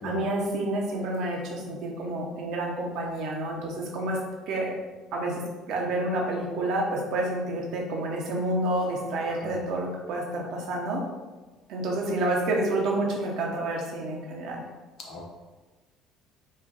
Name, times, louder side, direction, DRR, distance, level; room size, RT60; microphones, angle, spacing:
voice 1, 0.0-4.2 4.5-4.7 5.1-11.0 11.7-14.6, right 1 dB, 65° right, -1 dB, 1.1 m, -29 dB
voice 2, 9.2-9.6 15.0-15.3, left 2 dB, 60° left, -1 dB, 1.2 m, -39 dB
4.9 x 2.5 x 4.3 m, 1.2 s
hypercardioid pair, 60°, 0 cm